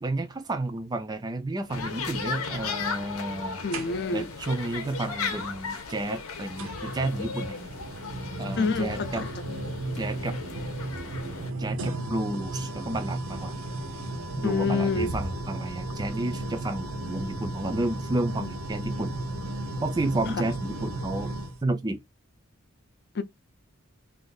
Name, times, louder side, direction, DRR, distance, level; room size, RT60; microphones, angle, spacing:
voice 1, 0.0-3.7 4.1-7.6 8.4-9.2 9.9-10.4 11.6-13.6 14.4-19.1 19.8-21.3 21.6-22.0, right 2 dB, 20° right, 0.3 m, -31 dB
sound 1, 1.7-11.5, left 5 dB, 90° left, 0.7 m, -36 dB
voice 2, 3.6-4.3 8.6-9.3 14.4-15.2 20.3-20.5 23.1-23.2, left 4 dB, 50° left, 0.4 m, -27 dB
sound 2, 3.7-4.3 5.7-5.8 6.6-21.6, right 1 dB, 80° right, 0.7 m, -34 dB
2.6 x 2.4 x 3.6 m
head